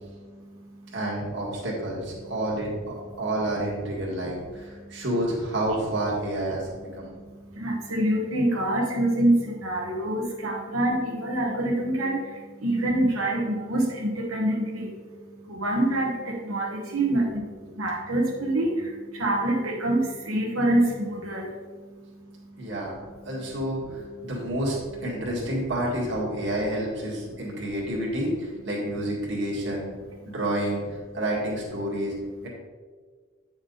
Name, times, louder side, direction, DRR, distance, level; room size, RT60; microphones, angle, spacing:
voice 1, 0.9-7.1 22.6-29.9 30.3-32.1 32.4-32.5, right 1 dB, 60° right, -4 dB, 2.0 m, -29 dB
voice 2, 7.6-9.4 9.6-12.2 12.6-14.9 15.6-17.4 17.8-18.7 19.2-21.4, right 1 dB, 85° right, -3 dB, 1.5 m, -25 dB
9.4 x 5.9 x 4.0 m, 1.5 s
head